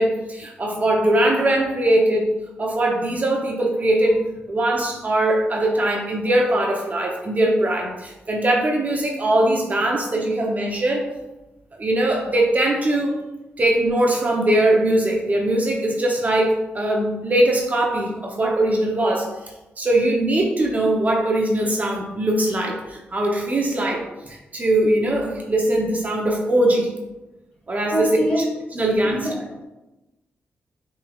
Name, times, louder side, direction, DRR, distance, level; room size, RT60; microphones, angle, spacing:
voice 1, 0.0-2.3 2.6-4.2 4.5-11.0 11.8-13.1 13.6-19.3 19.8-26.9 27.7-28.5 28.7-29.3, right 1 dB, 35° right, 0 dB, 0.7 m, -21 dB
voice 2, 27.9-28.4 29.0-29.7, right 1 dB, 25° left, -2 dB, 1.5 m, -25 dB
5.5 x 3.2 x 2.3 m, 1.0 s
cardioid pair, 80°, 4 cm